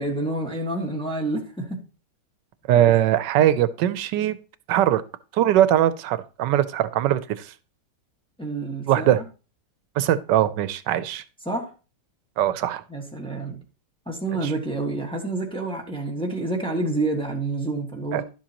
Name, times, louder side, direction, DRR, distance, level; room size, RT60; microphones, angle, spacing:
voice 1, 0.0-1.8 2.7-2.9 8.4-9.2 11.4-11.7 12.9-13.6 14.1-18.2, right 2 dB, 5° left, 1.4 m, -28 dB
voice 2, 2.7-4.4 4.7-5.0 5.3-7.5 8.9-9.2 10.0-11.2 12.4-12.8 14.4-14.5 18.1-18.2, right 12 dB, 85° right, 1.3 m, -21 dB
11.0 x 7.4 x 2.9 m
omnidirectional pair, 1.9 m